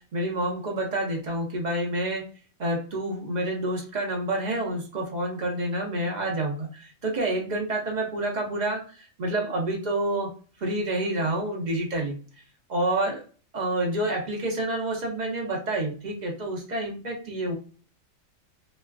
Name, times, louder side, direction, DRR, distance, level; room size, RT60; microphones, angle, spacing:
voice 1, 0.0-2.2 2.6-10.3 10.6-12.2 12.7-13.2 13.5-17.6, right 1 dB, 45° right, 0 dB, 0.6 m, -28 dB
3.1 x 2.3 x 2.3 m, 0.39 s
omnidirectional pair, 1.6 m